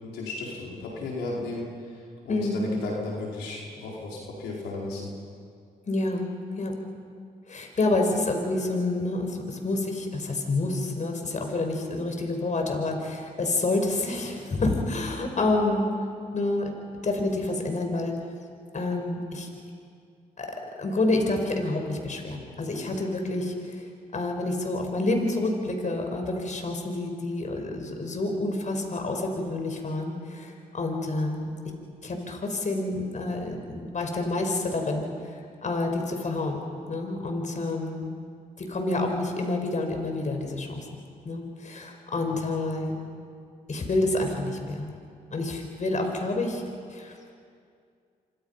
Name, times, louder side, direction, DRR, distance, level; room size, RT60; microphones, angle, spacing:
voice 1, 0.0-1.7 2.2-5.1 42.3-42.4, left 2 dB, 90° left, -3 dB, 4.8 m, -34 dB
voice 2, 2.3-2.6 5.9-6.3 6.6-6.7 7.5-15.9 16.3-16.7 17.0-18.1 18.7-19.5 20.4-23.9 24.1-31.5 32.0-36.6 36.9-38.1 38.6-40.9 41.2-43.3 43.7-44.9 45.3-46.6 46.9-47.2, left 2 dB, 45° left, 3 dB, 5.3 m, -28 dB
28.0 x 26.0 x 5.8 m, 2.3 s
supercardioid pair, 60°, 17 cm